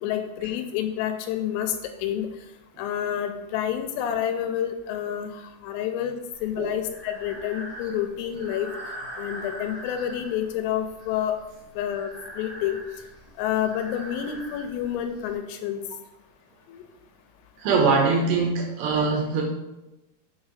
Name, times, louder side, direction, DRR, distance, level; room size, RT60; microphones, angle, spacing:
voice 1, 0.0-2.3 2.8-6.2 6.4-8.7 9.2-11.4 11.8-12.8 13.4-15.8 16.7-16.8, left 10 dB, 85° left, 7 dB, 3.1 m, -29 dB
Breathing, 6.3-15.3, equal, 30° right, 1.3 m, -42 dB
voice 2, 17.6-19.4, right 4 dB, 75° right, 0 dB, 2.8 m, -22 dB
7.3 x 4.2 x 4.9 m, 0.98 s
omnidirectional pair, 5.8 m